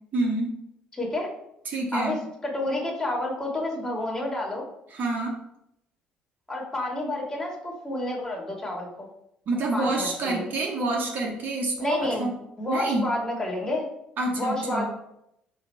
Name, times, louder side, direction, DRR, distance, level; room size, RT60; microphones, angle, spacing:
voice 1, 0.1-0.5 1.7-2.2 4.9-5.3 9.5-12.3 12.7-13.0 14.2-14.9, right 2 dB, 50° right, 0 dB, 0.9 m, -27 dB
voice 2, 0.9-1.3 1.9-4.7 6.5-9.1 9.7-10.5 11.8-12.3 12.6-13.8 14.3-14.9, left 1 dB, 15° left, -2 dB, 1.5 m, -29 dB
4.9 x 2.7 x 3.2 m, 0.79 s
hypercardioid pair, 55°, 4 cm